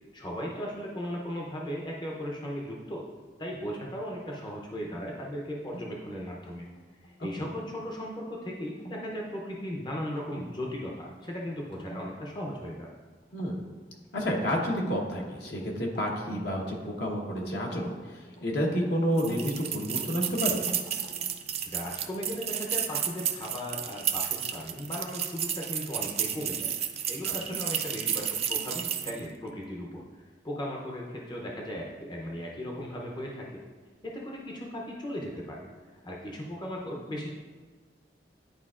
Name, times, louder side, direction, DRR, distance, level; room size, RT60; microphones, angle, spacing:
voice 1, 0.1-3.1 3.4-6.7 7.2-12.9 21.7-26.7 27.1-33.6 34.0-35.7 36.0-37.3, equal, 25° left, -2 dB, 0.7 m, -37 dB
sound 1, 5.7-7.6 8.8-9.1 9.4-9.7 10.2-10.5 10.8-11.2 11.7-12.1 13.3-14.1 14.9-16.5 16.8-19.5 20.0-21.4, right 1 dB, 85° left, 1.3 m, -46 dB
voice 2, 13.3-13.7 14.1-20.6 27.3-27.4, equal, 65° left, -1 dB, 1.2 m, -30 dB
sound 2, 19.2-29.3, right 9 dB, 35° right, 0.4 m, -32 dB
10.5 x 4.4 x 2.4 m, 1.4 s
head